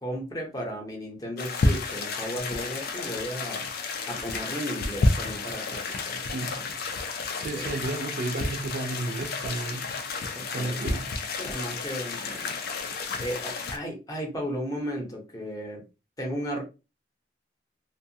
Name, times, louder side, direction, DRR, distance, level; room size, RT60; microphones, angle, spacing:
voice 1, 0.0-3.6 4.1-6.2 7.5-7.8 10.3-10.9 11.4-12.6 12.8-15.8 16.2-16.6, equal, 20° left, 0.7 m, -35 dB
sound 1, 1.4-13.8, left 3 dB, 55° left, 0.4 m, -31 dB
voice 2, 6.3-6.6 7.4-11.1, right 2 dB, 50° right, 0.5 m, -33 dB
2.5 x 2.2 x 2.7 m
head